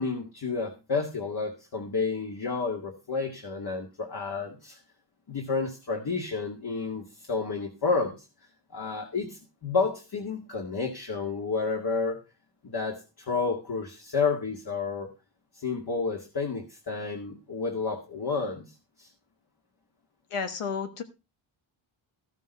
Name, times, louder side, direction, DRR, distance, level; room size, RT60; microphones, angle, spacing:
voice 1, 0.0-4.8 5.3-8.1 8.7-12.2 12.6-15.1 15.5-18.7 19.0-19.1, left 4 dB, 50° left, 2 dB, 2.0 m, -30 dB
voice 2, 20.3-21.0, left 5 dB, 80° left, 8 dB, 1.5 m, -31 dB
14.0 x 7.3 x 5.3 m, 0.29 s
wide cardioid pair, 165°, 50 cm